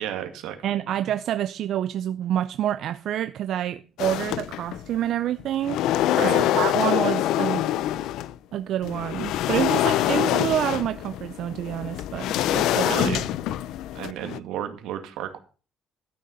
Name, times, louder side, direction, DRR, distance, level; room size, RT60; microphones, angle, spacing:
voice 1, 0.0-0.9 6.1-6.4 12.7-13.3 13.9-15.4, right 10 dB, 90° right, 2.1 m, -32 dB
voice 2, 0.6-5.8 6.2-7.7 8.5-12.9, right 11 dB, 60° right, 0.5 m, -27 dB
sound 1, 4.0-5.0 5.4-8.3 8.8-14.4, left 13 dB, 80° left, 0.5 m, -25 dB
13.0 x 6.6 x 5.5 m
cardioid pair, 135°, 0 cm